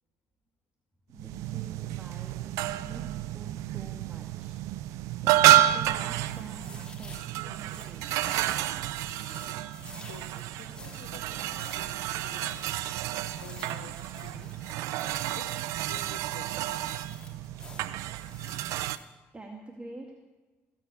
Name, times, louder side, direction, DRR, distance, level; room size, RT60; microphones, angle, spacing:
voice 1, 1.1-4.6 5.2-8.1 19.3-20.2, right 2 dB, 20° right, 2 dB, 2.1 m, -47 dB
sound 1, 1.1-19.0, right 14 dB, 80° right, 0.5 m, -30 dB
sound 2, 6.0-19.0, left 2 dB, 15° left, 2.8 m, -50 dB
voice 2, 9.9-12.6 13.4-14.5 15.4-16.5, left 7 dB, 90° left, 7 dB, 1.8 m, -50 dB
19.5 x 8.3 x 8.3 m, 1.2 s
supercardioid pair, 70°, 5 cm